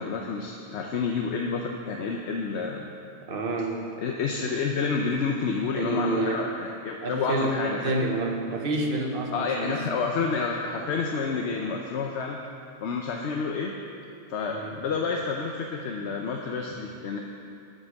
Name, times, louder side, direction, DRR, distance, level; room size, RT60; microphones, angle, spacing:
voice 1, 0.0-2.8 4.0-7.8 9.3-12.4 12.8-13.8 14.3-17.2, left 5 dB, 85° left, 1 dB, 1.0 m, -29 dB
voice 2, 3.3-3.8 5.7-6.5 7.0-9.8 14.5-14.8, right 2 dB, 55° right, 2 dB, 1.3 m, -28 dB
9.0 x 8.5 x 6.4 m, 2.6 s
omnidirectional pair, 1.1 m